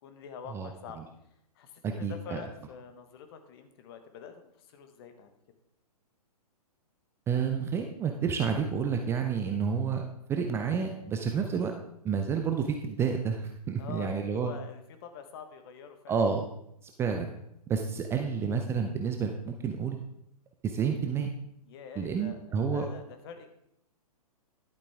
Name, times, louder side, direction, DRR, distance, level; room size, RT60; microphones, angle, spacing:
voice 1, 0.0-1.0 1.5-5.3 13.8-16.2 21.6-23.6, left 7 dB, 40° left, 7 dB, 1.2 m, -46 dB
voice 2, 1.8-2.4 7.3-10.0 10.3-11.7 12.0-14.5 16.1-16.4 17.0-17.3 17.7-20.0 20.6-21.3 22.0-22.9, right 6 dB, 10° right, 4 dB, 0.5 m, -29 dB
11.0 x 8.3 x 3.5 m, 0.77 s
figure-of-eight pair, 115°, 20 cm